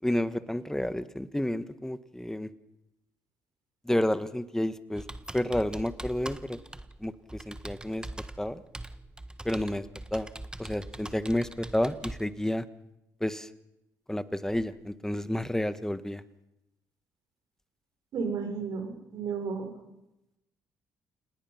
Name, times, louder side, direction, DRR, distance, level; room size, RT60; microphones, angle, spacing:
voice 1, 0.0-2.5 3.8-5.1 5.3-6.6 7.0-8.1 8.4-8.6 9.4-9.9 10.1-10.3 10.6-12.7 13.2-13.5 14.1-16.2, left 1 dB, 5° left, 12 dB, 1.5 m, -30 dB
Computer keyboard, 4.9-12.2, right 1 dB, 10° right, 1.5 m, -42 dB
voice 2, 18.1-19.7, right 5 dB, 65° right, 5 dB, 6.2 m, -33 dB
28.5 x 19.5 x 5.9 m, 0.92 s
hypercardioid pair, 55°, 7 cm